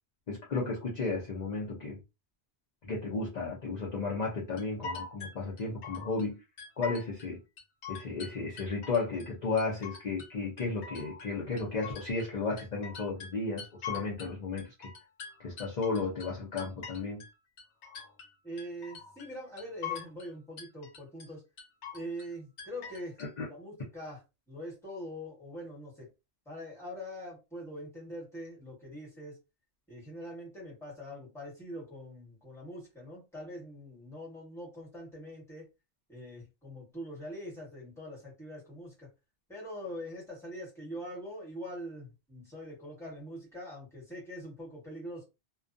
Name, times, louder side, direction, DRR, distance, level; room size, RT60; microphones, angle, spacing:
voice 1, 0.3-2.0 2.8-6.4 6.8-7.4 7.9-14.7 15.4-17.2 23.2-23.5, left 3 dB, 45° left, 0.7 m, -34 dB
sound 1, 4.6-6.3 6.6-7.3 7.6-9.3 9.6-10.3 10.6-14.3 14.6-17.3 17.6-18.3 18.6-19.3 19.6-20.3 20.6-21.3 21.6-22.3 22.6-23.3, left 6 dB, 80° left, 1.0 m, -43 dB
voice 2, 18.4-21.4 21.9-23.2 23.5-24.2 24.5-26.1 26.4-29.4 29.9-35.7 36.1-39.1 39.5-45.2, equal, ahead, 1.2 m, -43 dB
2.3 x 2.2 x 2.5 m
omnidirectional pair, 1.2 m